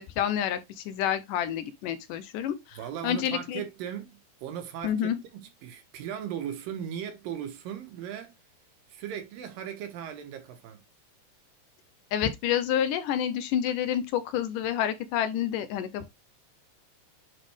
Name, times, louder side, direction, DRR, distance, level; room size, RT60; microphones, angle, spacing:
voice 1, 0.0-2.8 3.0-3.6 4.8-5.2 12.1-16.1, left 10 dB, 80° left, 2.1 m, -29 dB
voice 2, 2.7-8.3 8.9-10.8, right 9 dB, 75° right, 2.8 m, -38 dB
9.3 x 3.7 x 3.5 m
omnidirectional pair, 4.1 m